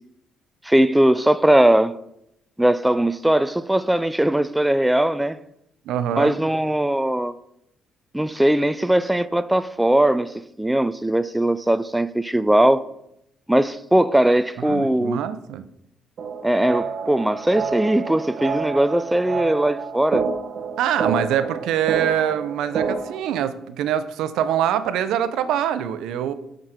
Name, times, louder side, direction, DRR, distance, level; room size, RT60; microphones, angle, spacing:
voice 1, 0.6-1.9 2.6-5.4 6.2-7.3 8.1-12.9 13.5-15.2 16.4-20.2, right 1 dB, 5° right, 0.3 m, -19 dB
voice 2, 5.9-6.4 14.6-15.6 20.8-26.3, right 10 dB, 80° right, 0.6 m, -24 dB
sound 1, 16.2-23.2, right 5 dB, 55° right, 0.9 m, -29 dB
7.7 x 5.2 x 5.8 m
cardioid pair, 120°, 0 cm